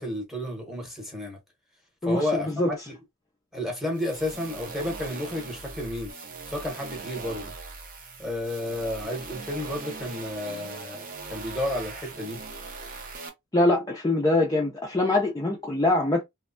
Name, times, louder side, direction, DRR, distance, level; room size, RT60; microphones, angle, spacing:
voice 1, 0.0-1.4 2.0-2.9 3.5-6.1 6.5-7.5 8.2-12.4, left 1 dB, ahead, 0.9 m, -32 dB
voice 2, 2.0-2.7 13.5-16.2, left 2 dB, 15° left, 0.4 m, -23 dB
sound 1, 3.9-13.3, right 4 dB, 40° right, 0.6 m, -40 dB
3.1 x 2.1 x 2.4 m
head